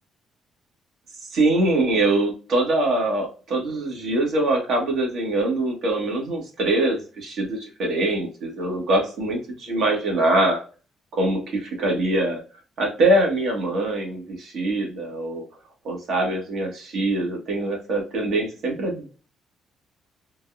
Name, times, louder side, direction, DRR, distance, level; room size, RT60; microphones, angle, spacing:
voice 1, 1.3-10.6 11.1-12.4 12.8-15.4 15.8-19.1, right 2 dB, 70° right, 1 dB, 1.5 m, -23 dB
3.8 x 2.4 x 2.5 m, 0.36 s
cardioid pair, 90°, 0 cm